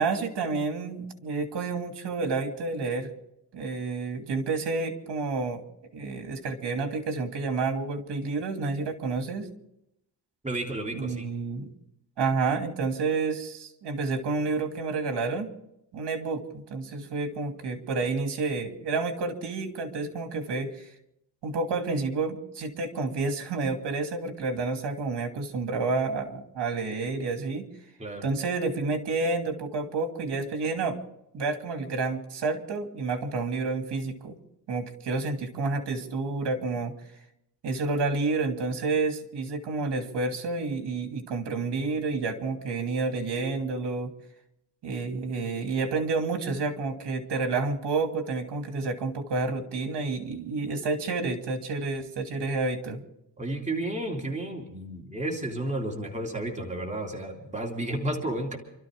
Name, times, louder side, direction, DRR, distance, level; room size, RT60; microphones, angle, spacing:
voice 1, 0.0-3.1 3.5-5.6 5.9-9.5 10.9-11.7 12.2-15.5 15.9-20.9 21.4-27.7 28.2-31.0 31.3-34.3 34.7-36.9 37.6-44.1 44.8-53.0, right 3 dB, 65° right, 5 dB, 2.8 m, -29 dB
voice 2, 10.4-11.3 28.0-28.2 53.4-58.6, right 1 dB, 15° right, 1 dB, 3.3 m, -32 dB
28.5 x 13.0 x 3.8 m, 0.80 s
cardioid pair, 90°, 43 cm